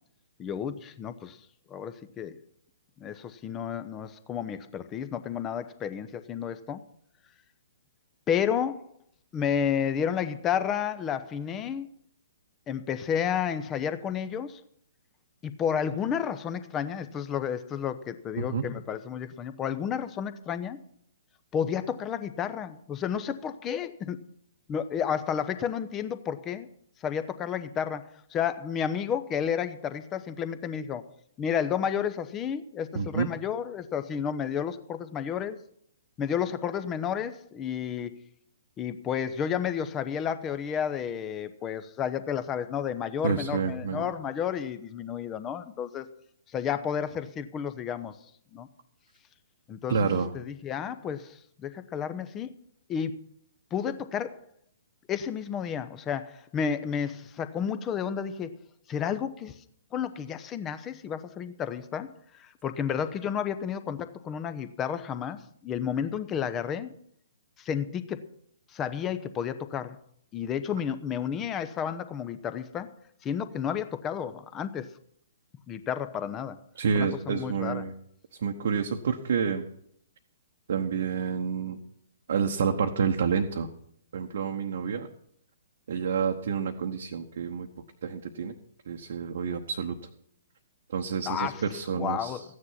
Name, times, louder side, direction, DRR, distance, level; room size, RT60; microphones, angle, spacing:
voice 1, 0.4-1.4 1.7-2.3 3.0-6.8 8.3-8.9 9.3-11.9 12.7-14.6 15.4-20.8 21.5-24.2 24.7-26.7 27.0-31.0 31.4-35.6 36.2-38.1 38.8-46.1 46.5-48.2 48.5-48.7 49.7-52.5 52.9-53.2 53.7-54.4 55.1-58.6 58.9-59.6 59.9-62.1 62.4-66.9 67.6-68.2 68.7-70.0 70.3-72.9 73.2-74.9 75.7-76.6 76.9-77.8 91.3-91.6 91.9-92.4, left 8 dB, 20° left, 12 dB, 0.8 m, -31 dB
voice 2, 18.4-18.8 32.9-33.3 43.2-44.1 49.9-50.3 76.8-77.9 78.4-79.6 80.7-81.8 82.3-83.7 84.1-85.1 85.9-87.7 88.0-88.5 88.9-90.0 90.9-92.4, right 6 dB, 55° right, 3 dB, 1.0 m, -29 dB
14.5 x 9.8 x 5.7 m, 0.68 s
figure-of-eight pair, 120°, 0 cm